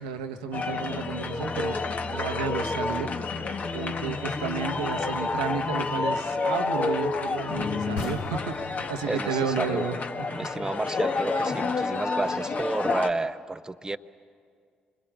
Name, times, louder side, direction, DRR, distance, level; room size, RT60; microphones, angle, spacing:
voice 1, 0.0-1.8 2.1-3.2 3.7-10.0, right 6 dB, 85° right, 6 dB, 1.2 m, -32 dB
sound 1, 0.5-13.1, left 4 dB, 45° left, 1.4 m, -29 dB
sound 2, 8.0-11.4, left 3 dB, 80° left, 3.2 m, -40 dB
voice 2, 9.1-9.8 10.3-14.0, right 2 dB, 20° right, 11 dB, 0.8 m, -31 dB
25.0 x 22.0 x 8.9 m, 2.1 s
hypercardioid pair, 45°, 4 cm